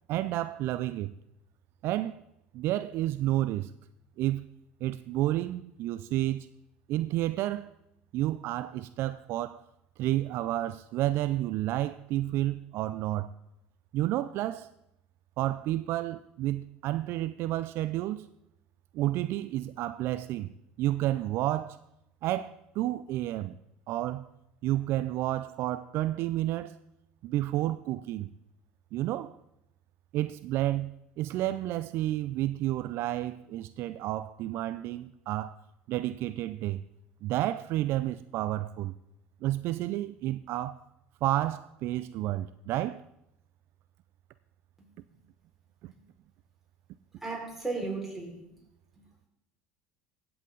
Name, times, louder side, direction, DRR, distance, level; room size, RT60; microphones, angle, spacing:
voice 1, 0.1-1.1 1.8-2.2 2.5-3.7 4.2-4.5 4.8-6.5 6.9-7.7 8.1-9.7 10.0-13.3 13.9-14.7 15.4-18.3 18.9-20.5 20.8-21.8 22.2-23.6 23.9-24.3 24.6-26.8 27.2-28.3 28.9-29.4 30.1-35.6 35.9-36.8 37.2-38.9 39.4-40.8 41.2-43.0 45.8-45.9, right 14 dB, 60° right, 0.4 m, -30 dB
voice 2, 47.2-48.4, right 3 dB, 5° right, 4.8 m, -34 dB
16.0 x 7.8 x 3.8 m
supercardioid pair, 85°, 5 cm